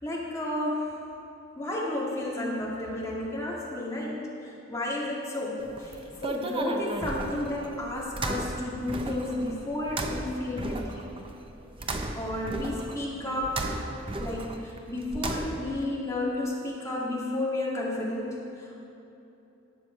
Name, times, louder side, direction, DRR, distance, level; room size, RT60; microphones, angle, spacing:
voice 1, 0.0-1.0 1.6-11.0 11.8-11.9 12.1-13.9 14.2-18.7, left 1 dB, 15° left, -6 dB, 2.3 m, -32 dB
sound 1, 5.6-15.8, right 2 dB, 25° right, 0.7 m, -35 dB
18.0 x 6.9 x 4.6 m, 2.9 s
head